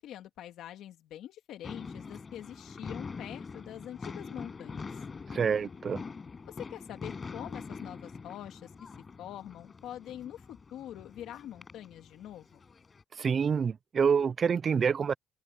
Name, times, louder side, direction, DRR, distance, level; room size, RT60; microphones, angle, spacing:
voice 1, 0.0-4.9 6.4-8.7 9.2-12.6, left 11 dB, 60° left, 2.5 m, -45 dB
sound 1, 1.6-13.0, left 4 dB, 20° left, 7.9 m, -44 dB
voice 2, 5.3-6.0 13.2-15.1, right 6 dB, 30° right, 0.3 m, -27 dB
open air
cardioid pair, 170°, 0 cm